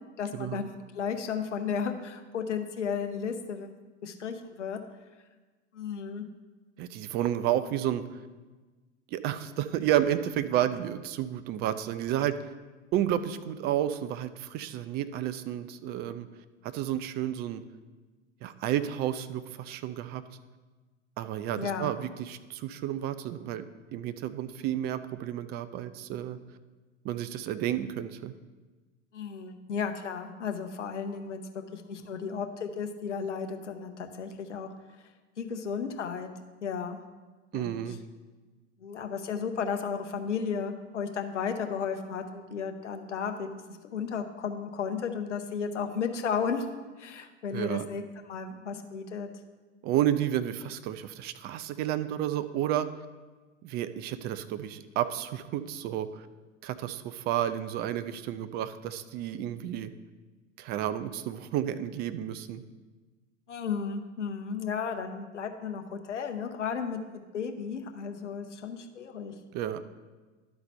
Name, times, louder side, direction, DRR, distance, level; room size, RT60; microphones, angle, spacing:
voice 1, 0.2-3.7 4.0-4.8 5.7-6.3 21.6-22.0 29.1-31.4 31.7-34.7 35.4-36.3 36.6-37.0 37.5-37.8 38.8-43.6 43.9-46.7 47.0-49.3 63.5-69.3, left 6 dB, 75° left, 6 dB, 0.8 m, -34 dB
voice 2, 6.8-8.2 9.1-12.5 12.9-16.3 16.6-17.6 18.4-20.2 21.2-23.7 23.9-26.4 27.0-28.3 37.5-38.0 47.5-47.9 49.8-52.9 53.6-56.3 56.6-59.9 60.6-62.6 69.5-69.8, right 11 dB, 30° right, 12 dB, 0.4 m, -31 dB
11.5 x 4.0 x 5.4 m, 1.3 s
figure-of-eight pair, 85°, 36 cm